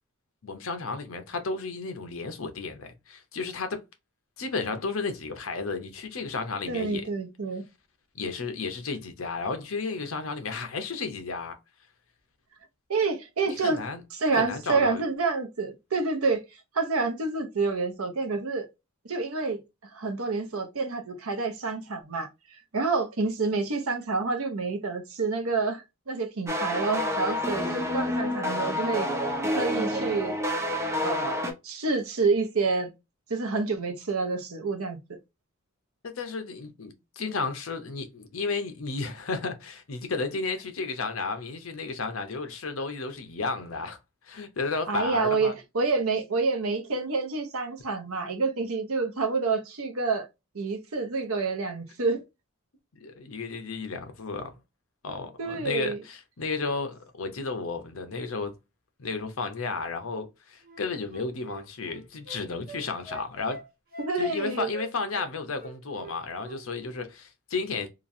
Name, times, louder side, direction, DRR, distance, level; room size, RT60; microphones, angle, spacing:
voice 1, 0.4-3.8 4.4-7.1 8.1-11.6 13.5-14.0 14.3-15.0 36.0-44.0 44.2-45.5 53.0-54.5 55.0-58.5 59.0-63.6 64.2-67.9, left 4 dB, 70° left, 0.7 m, -33 dB
voice 2, 6.7-7.6 12.9-13.8 14.1-16.4 16.7-18.7 19.0-19.6 19.9-22.3 22.7-29.1 29.5-30.3 31.0-32.9 33.3-35.0 44.9-50.3 50.5-52.2 55.4-56.0 64.0-64.7, right 4 dB, 85° right, 0.8 m, -28 dB
sound 1, 26.5-31.5, left 1 dB, 15° right, 0.6 m, -28 dB
Wind instrument woodwind instrument, 60.6-65.3 65.6-66.6 66.9-67.1, right 3 dB, 45° right, 1.1 m, -44 dB
3.0 x 2.4 x 2.5 m
head